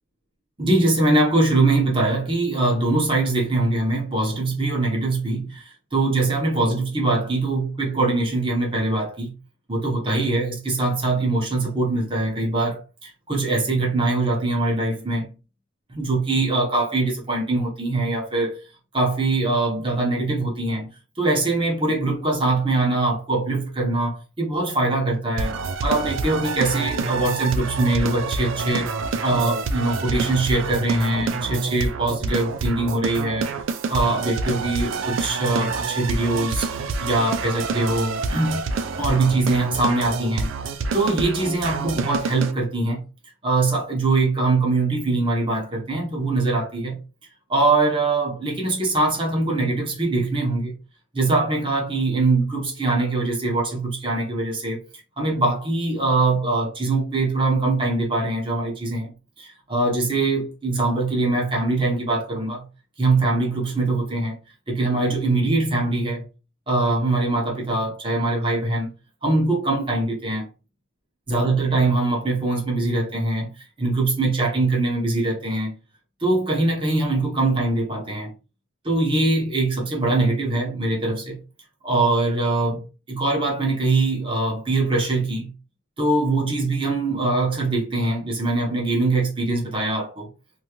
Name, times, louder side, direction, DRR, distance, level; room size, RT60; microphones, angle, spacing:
voice 1, 0.6-9.3 9.7-15.3 15.9-18.6 18.9-20.9 21.2-28.9 29.2-33.5 33.9-36.7 37.0-38.7 39.0-40.5 40.9-43.0 43.4-47.0 47.5-50.7 51.1-54.9 55.2-59.1 59.4-62.6 63.0-64.4 64.7-66.2 66.7-68.9 69.2-70.5 71.3-73.5 73.8-75.8 76.2-78.3 78.8-81.4 81.8-82.8 83.1-85.5 86.0-90.3, right 2 dB, 25° right, 0.7 m, -22 dB
sound 1, 25.4-42.5, right 4 dB, 85° right, 0.4 m, -27 dB
2.7 x 2.3 x 2.9 m
head